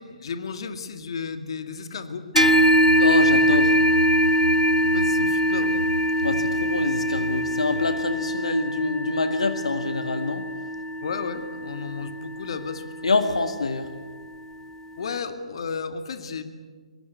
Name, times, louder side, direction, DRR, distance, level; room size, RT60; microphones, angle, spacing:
voice 1, 0.0-2.3 4.8-5.9 11.0-13.1 15.0-16.4, left 5 dB, 55° left, 8 dB, 2.2 m, -33 dB
sound 1, 2.3-13.9, equal, 10° left, 1.0 m, -23 dB
sound 2, 2.4-8.0, right 3 dB, 85° right, 1.1 m, -28 dB
voice 2, 3.0-3.7 6.2-10.5 13.0-13.9, left 3 dB, 70° left, 8 dB, 1.9 m, -26 dB
24.0 x 22.5 x 8.3 m, 1.5 s
figure-of-eight pair, 135°, 3 cm